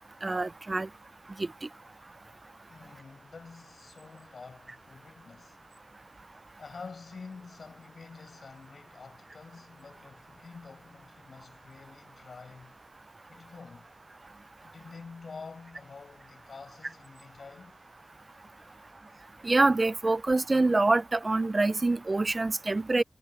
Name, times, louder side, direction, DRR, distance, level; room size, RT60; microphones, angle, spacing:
voice 1, 0.2-0.9 19.4-23.0, right 2 dB, 40° right, 0.4 m, -25 dB
voice 2, 2.7-5.7 6.6-12.7 13.3-13.9 14.6-17.8 18.6-18.8, left 4 dB, 90° left, 6.6 m, -48 dB
wide cardioid pair, 80°, 0 cm